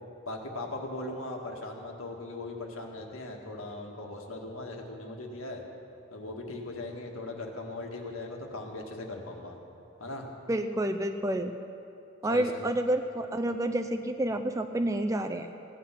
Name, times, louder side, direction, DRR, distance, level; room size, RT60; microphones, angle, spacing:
voice 1, 0.2-5.6 6.1-9.6 10.0-10.3 12.3-12.4, left 2 dB, 80° left, 1 dB, 1.7 m, -39 dB
voice 2, 10.5-11.5 12.2-15.5, right 1 dB, 15° right, 7 dB, 0.4 m, -29 dB
16.5 x 10.0 x 5.8 m, 2.8 s
head